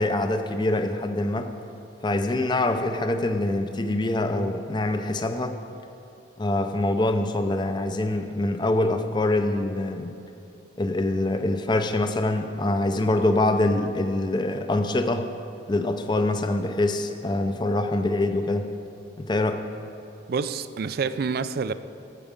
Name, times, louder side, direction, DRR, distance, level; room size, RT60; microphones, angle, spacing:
voice 1, 0.0-1.5 2.0-5.6 6.4-10.2 10.8-15.3 15.7-18.7 19.2-19.6, left 2 dB, 25° left, 0.5 m, -24 dB
voice 2, 20.3-21.7, right 5 dB, 50° right, 0.4 m, -27 dB
12.5 x 8.3 x 5.1 m
head